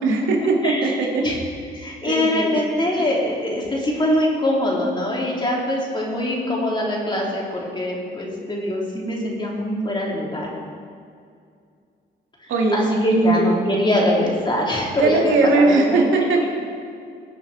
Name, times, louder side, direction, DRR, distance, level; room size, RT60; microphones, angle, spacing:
voice 1, 0.0-1.2 2.1-2.6 12.5-12.8 13.1-13.5 15.0-16.5, right 3 dB, 80° right, 0 dB, 2.2 m, -19 dB
voice 2, 0.6-0.9 1.2-1.4 1.7-10.5 12.4-16.0, left 1 dB, 25° left, -3 dB, 3.3 m, -23 dB
19.5 x 7.2 x 4.3 m, 2.3 s
cardioid pair, 90°, 20 cm